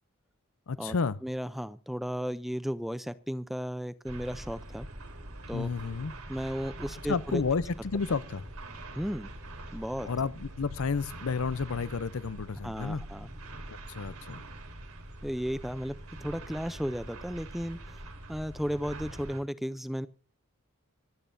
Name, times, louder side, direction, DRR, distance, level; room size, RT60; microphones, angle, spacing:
voice 1, 0.7-1.2 5.5-6.1 7.1-8.5 10.0-13.0 13.7-14.4, left 4 dB, 70° left, 0.6 m, -31 dB
voice 2, 1.2-4.9 5.5-5.7 6.3-7.4 8.9-9.3 9.7-10.1 12.6-13.3 15.2-18.0 18.3-20.1, equal, ahead, 0.5 m, -34 dB
sound 1, 4.0-19.4, right 1 dB, 90° right, 3.4 m, -44 dB
25.5 x 9.1 x 2.6 m
head